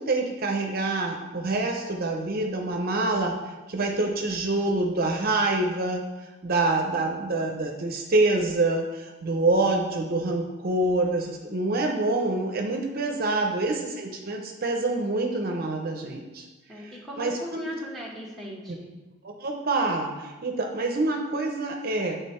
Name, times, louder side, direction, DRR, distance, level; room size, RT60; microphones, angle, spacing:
voice 1, 0.0-3.3 3.7-6.0 6.4-16.4 17.2-17.7 19.2-22.2, right 2 dB, 50° right, 2 dB, 0.6 m, -26 dB
voice 2, 13.0-13.3 16.7-18.9, left 1 dB, ahead, -3 dB, 1.0 m, -39 dB
7.5 x 3.4 x 4.3 m, 1.2 s
head